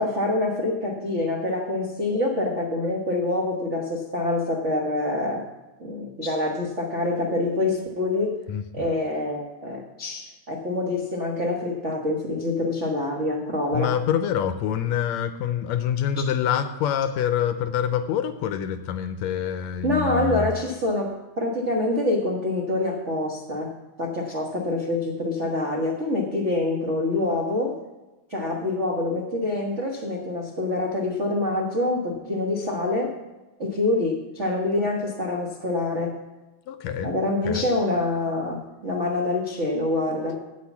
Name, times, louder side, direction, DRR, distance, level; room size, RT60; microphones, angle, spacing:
voice 1, 0.0-5.5 5.8-8.4 8.7-13.9 19.8-27.8 28.3-33.1 33.6-36.2 37.0-40.4, left 2 dB, 65° right, -1 dB, 0.7 m, -26 dB
voice 2, 13.7-20.5 36.7-37.1 37.4-37.7, left 9 dB, 75° left, 10 dB, 1.7 m, -26 dB
8.6 x 8.3 x 7.1 m, 1.1 s
omnidirectional pair, 3.4 m